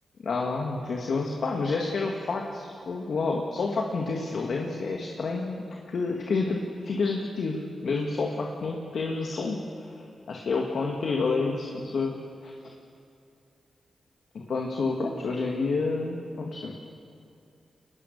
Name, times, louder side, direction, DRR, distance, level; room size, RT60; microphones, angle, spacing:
voice 1, 0.2-12.1 12.4-12.5 14.3-16.7, left 3 dB, 70° left, 0 dB, 2.0 m, -29 dB
24.0 x 20.0 x 6.7 m, 2.5 s
cardioid pair, 65°, 0 cm